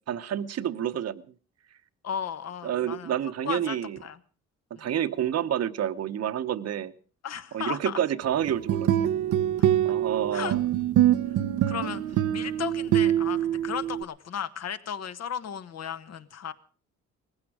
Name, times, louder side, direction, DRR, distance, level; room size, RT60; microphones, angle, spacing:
voice 1, 0.1-1.2 2.6-4.0 4.8-6.9 7.5-8.9 9.8-10.6, right 10 dB, 55° right, 12 dB, 1.0 m, -29 dB
voice 2, 2.0-3.1 3.4-4.2 4.7-4.9 7.2-8.0 10.3-10.6 11.7-16.5, left 8 dB, 60° left, 12 dB, 1.3 m, -35 dB
sound 1, 8.5-14.0, right 11 dB, 80° right, 0.8 m, -24 dB
19.5 x 15.5 x 4.9 m, 0.38 s
cardioid pair, 90°, 30 cm